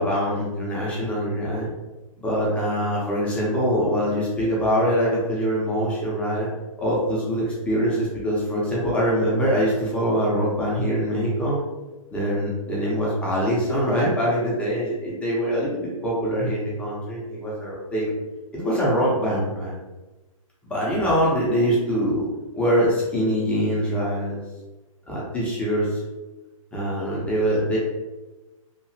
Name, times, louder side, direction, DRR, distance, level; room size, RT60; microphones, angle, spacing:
voice 1, 0.0-1.7 2.2-6.5 6.8-11.6 12.1-18.1 18.5-19.7 20.7-22.2 22.5-24.4 25.1-26.0 26.7-27.8, equal, 5° left, -6 dB, 0.6 m, -23 dB
2.9 x 2.4 x 2.7 m, 1.1 s
hypercardioid pair, 145°, 18 cm